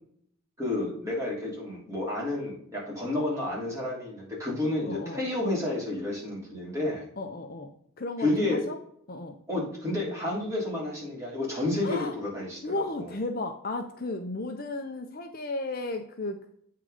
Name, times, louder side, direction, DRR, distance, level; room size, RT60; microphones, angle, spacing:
voice 1, 0.6-7.1 8.2-8.6 9.5-13.1, left 2 dB, 15° right, -5 dB, 2.9 m, -30 dB
voice 2, 4.9-5.2 7.2-7.7 8.0-8.8 9.1-9.4 11.8-12.1 12.6-16.4, left 2 dB, 45° left, 5 dB, 0.6 m, -34 dB
8.3 x 3.8 x 4.9 m, 0.65 s
head